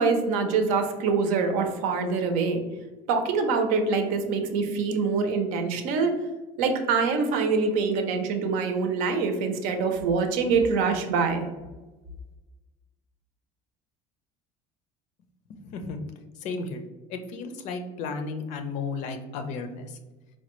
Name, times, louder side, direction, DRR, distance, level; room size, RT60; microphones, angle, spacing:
voice 1, 0.0-2.6 3.1-6.1 6.6-11.5, right 4 dB, 75° right, 6 dB, 0.6 m, -25 dB
voice 2, 15.5-16.0 16.4-16.8 17.1-20.0, left 4 dB, 60° left, 7 dB, 0.5 m, -34 dB
4.3 x 2.2 x 3.0 m, 1.2 s
cardioid pair, 145°, 14 cm